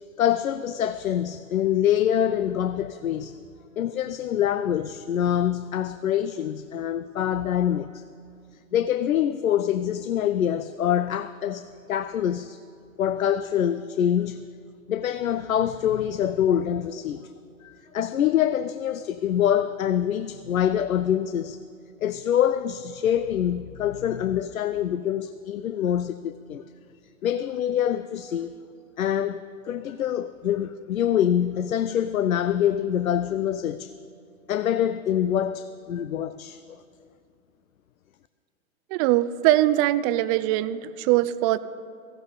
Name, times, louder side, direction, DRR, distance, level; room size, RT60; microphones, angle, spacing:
voice 1, 0.2-3.4 3.8-8.0 8.7-12.6 13.0-14.5 14.9-17.3 17.6-21.6 22.0-26.6 27.2-28.5 29.0-33.9 34.5-36.6, left 10 dB, 90° left, 0.6 m, -25 dB
voice 2, 38.9-41.6, right 14 dB, 30° right, 0.4 m, -22 dB
17.5 x 16.0 x 4.0 m
hypercardioid pair, 110°, 40 cm